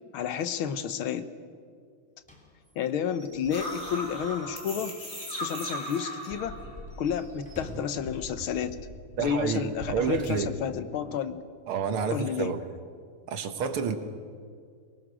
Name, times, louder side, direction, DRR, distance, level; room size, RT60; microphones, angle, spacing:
voice 1, 0.1-1.3 2.8-4.9 5.4-6.6 7.0-8.8 9.2-11.4 12.1-12.6, left 8 dB, 80° left, 11 dB, 1.8 m, -31 dB
Slam / Squeak / Wood, 2.2-5.4 5.8-5.9 6.2-6.3 6.8-8.1, equal, 5° left, 3.1 m, -48 dB
sound 1, 3.5-7.5 7.8-10.3, equal, 30° left, 4.1 m, -38 dB
voice 2, 9.2-10.6 11.7-12.6 13.3-14.0, right 6 dB, 80° right, 8 dB, 2.2 m, -29 dB
23.5 x 19.0 x 6.3 m, 2.1 s
omnidirectional pair, 2.3 m